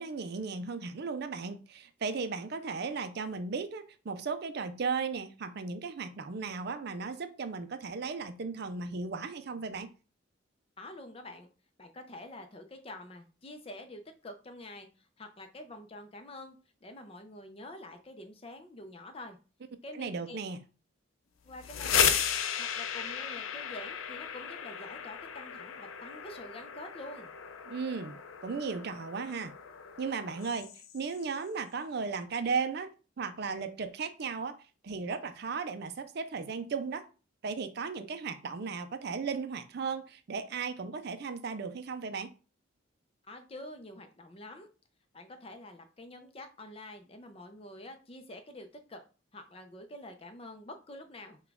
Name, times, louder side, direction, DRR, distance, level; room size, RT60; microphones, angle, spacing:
voice 1, 0.0-9.9 19.9-20.6 27.7-29.5 30.0-34.6 34.8-37.0 37.4-42.3, right 5 dB, 50° right, 0.4 m, -36 dB
voice 2, 10.8-11.5 11.8-16.6 16.8-19.4 19.8-20.4 21.4-22.2 22.6-27.3 43.2-44.7 45.1-49.0 49.3-51.4, left 1 dB, 30° left, 0.5 m, -47 dB
sound 1, 21.5-31.2, left 8 dB, 90° left, 0.5 m, -35 dB
5.8 x 2.3 x 3.5 m
head